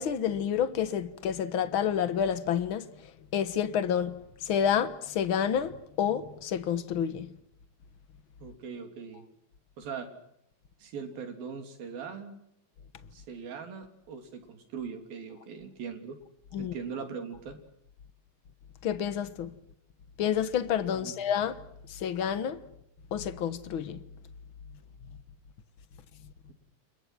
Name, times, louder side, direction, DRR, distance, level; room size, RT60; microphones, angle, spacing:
voice 1, 0.0-2.9 3.3-7.3 16.5-16.7 18.8-19.5 20.2-21.6 21.9-22.6 23.1-24.0, left 8 dB, 60° left, 1.4 m, -29 dB
voice 2, 8.4-9.2 9.8-10.1 10.8-12.4 13.1-16.2 16.6-17.6 20.9-21.2, right 6 dB, 80° right, 5.0 m, -40 dB
29.5 x 29.5 x 6.1 m
omnidirectional pair, 4.1 m